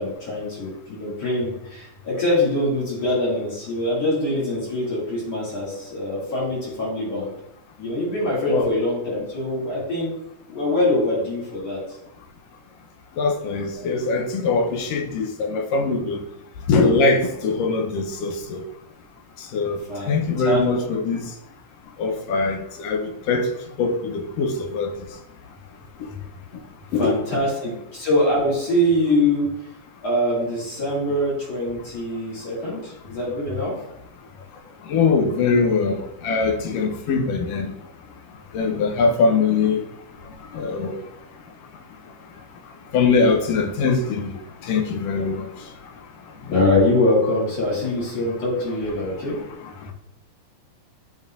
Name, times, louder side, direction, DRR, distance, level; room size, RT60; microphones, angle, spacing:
voice 1, 0.0-7.3 7.8-10.1 10.5-11.8 13.8-13.9 19.9-20.6 27.0-29.5 30.0-33.7 46.5-49.4, left 1 dB, 60° left, 3.5 m, -23 dB
voice 2, 13.2-16.2 16.7-18.6 19.4-21.3 22.0-23.5 23.8-24.9 26.0-26.1 26.9-27.4 34.9-37.7 38.5-39.8 40.5-41.0 42.9-45.7 49.0-49.1, left 4 dB, 80° left, 1.4 m, -22 dB
10.5 x 4.1 x 2.6 m
omnidirectional pair, 3.4 m